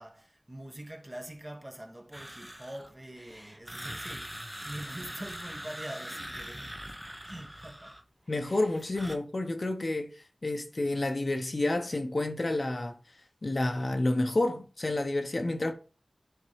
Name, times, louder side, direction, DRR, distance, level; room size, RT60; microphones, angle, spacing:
voice 1, 0.0-6.8 7.2-8.0, right 1 dB, 30° right, 1.1 m, -44 dB
sound 1, 2.1-8.0 8.3-9.2, equal, 5° right, 0.7 m, -42 dB
voice 2, 8.3-10.1 10.4-13.0 13.4-15.7, left 2 dB, 55° left, 0.9 m, -29 dB
9.9 x 3.7 x 3.2 m
wide cardioid pair, 45°, 0 cm